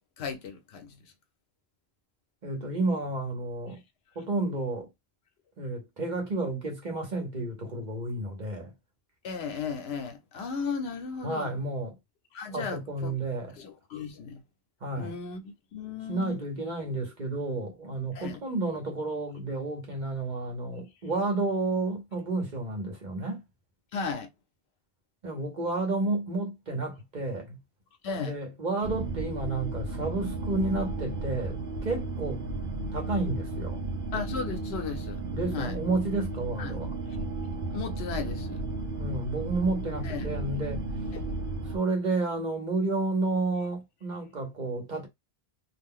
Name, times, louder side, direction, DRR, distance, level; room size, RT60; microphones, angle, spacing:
voice 1, 0.2-1.0 9.2-11.5 12.3-13.1 13.6-14.4 15.0-16.4 18.1-18.4 23.9-24.3 28.0-28.4 34.1-35.2 35.5-35.8 36.6-36.8 37.7-38.6 40.0-40.3 41.1-41.2, left 5 dB, 80° left, 0.9 m, -35 dB
voice 2, 2.4-3.8 4.1-4.9 5.6-8.7 11.2-12.0 12.5-13.6 14.8-15.1 16.1-23.4 25.2-27.6 28.2-32.4 32.9-33.8 35.3-36.9 39.0-40.9 41.7-45.1, right 2 dB, 50° right, 1.0 m, -31 dB
sound 1, 28.8-41.8, right 3 dB, 65° right, 0.7 m, -34 dB
2.4 x 2.2 x 3.6 m
omnidirectional pair, 1.1 m